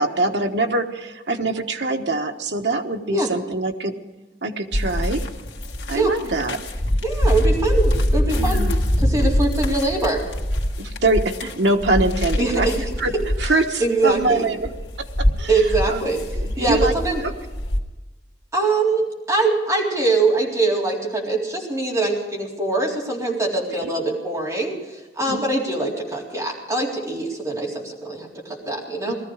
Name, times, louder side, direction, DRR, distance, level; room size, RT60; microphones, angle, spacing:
voice 1, 0.0-4.0 4.4-5.2 5.9-6.6 8.4-8.8 10.8-12.7 13.0-14.7 15.0-16.1 16.4-16.9 17.2-17.3 23.8-23.9 25.3-25.4 27.1-27.2 29.0-29.1, right 2 dB, 75° right, 4 dB, 1.2 m, -24 dB
sound 1, 4.7-17.8, left 1 dB, 70° left, 1.9 m, -24 dB
voice 2, 7.0-8.7 9.0-10.2 12.4-12.7 13.8-14.5 15.5-16.2 16.6-17.2 18.5-24.8 25.2-29.2, right 3 dB, 15° right, -4 dB, 3.8 m, -23 dB
19.5 x 14.0 x 4.9 m, 1.2 s
head